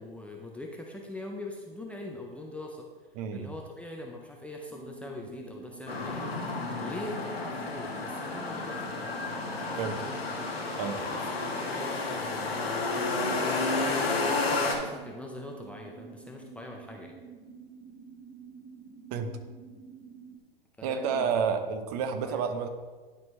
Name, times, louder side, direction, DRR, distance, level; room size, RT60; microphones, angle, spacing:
voice 1, 0.0-2.9 3.3-9.0 9.3-10.3 11.1-11.2 11.6-17.1 20.8-21.3 22.2-22.4, left 2 dB, 5° left, 0 dB, 0.6 m, -43 dB
voice 2, 3.1-3.5 9.8-10.0 10.8-11.1 19.1-19.3 20.8-22.7, right 6 dB, 40° right, 8 dB, 0.8 m, -30 dB
sound 1, 4.7-20.4, right 6 dB, 20° right, 1.2 m, -49 dB
sound 2, 5.9-14.8, left 3 dB, 90° left, 1.5 m, -31 dB
11.0 x 4.5 x 3.2 m, 1.4 s
figure-of-eight pair, 110°, 29 cm